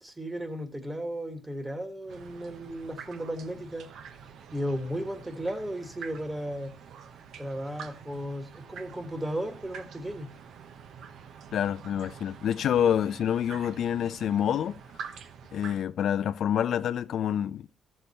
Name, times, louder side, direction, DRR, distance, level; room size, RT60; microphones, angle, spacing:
voice 1, 0.0-3.9 4.5-6.7 7.4-10.3, equal, 15° right, 1.5 m, -35 dB
sound 1, 2.1-15.8, right 7 dB, 75° right, 1.0 m, -46 dB
voice 2, 11.5-14.8 15.5-17.7, left 9 dB, 70° left, 0.4 m, -27 dB
13.5 x 6.7 x 4.2 m
cardioid pair, 90°, 0 cm